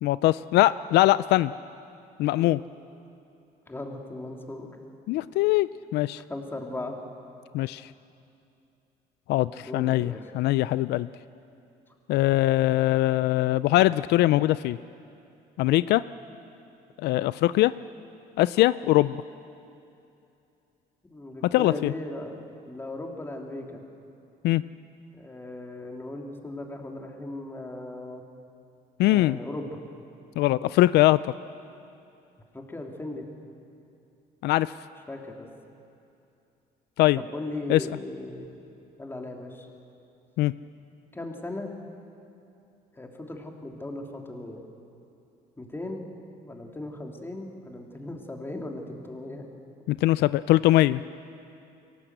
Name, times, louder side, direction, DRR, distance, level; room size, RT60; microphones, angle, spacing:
voice 1, 0.0-1.5 2.2-2.6 5.1-6.2 7.5-7.9 9.3-11.1 12.1-14.8 15.6-16.0 17.0-17.7 18.4-19.2 21.5-21.9 24.4-24.6 29.0-29.4 30.4-31.3 34.4-34.7 37.0-37.2 37.7-37.8 40.4-40.5 49.9-51.0, left 16 dB, 80° left, 16 dB, 0.4 m, -22 dB
voice 2, 3.7-4.7 6.3-7.0 9.6-10.2 21.0-22.4 22.7-23.8 25.1-28.2 29.1-29.8 32.5-33.3 35.1-35.5 37.1-38.5 39.0-39.7 41.1-41.7 42.9-44.6 45.6-46.0 46.4-49.5, left 2 dB, 15° left, 1 dB, 2.7 m, -37 dB
23.5 x 18.0 x 8.0 m, 2.7 s
cardioid pair, 110°, 17 cm